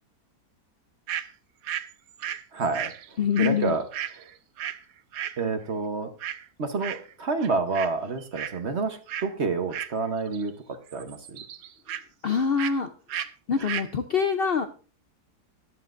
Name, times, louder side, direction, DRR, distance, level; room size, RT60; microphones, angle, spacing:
sound 1, 1.1-1.3 1.6-4.8 5.1-5.4 6.2-6.5 6.8-7.1 7.4-7.9 8.2-8.6 9.1-9.3 9.7-10.5 10.7-12.0 12.6-12.8 13.1-13.3 13.6-13.9, right 10 dB, 70° right, 1.1 m, -34 dB
voice 1, 2.5-2.9 3.4-3.8 5.4-6.1 6.6-10.5 10.9-11.4, right 4 dB, 45° right, 8 dB, 1.3 m, -28 dB
voice 2, 3.2-3.8 12.2-12.9 13.5-14.7, left 6 dB, 55° left, 7 dB, 0.7 m, -24 dB
14.0 x 11.5 x 2.6 m, 0.37 s
omnidirectional pair, 1.7 m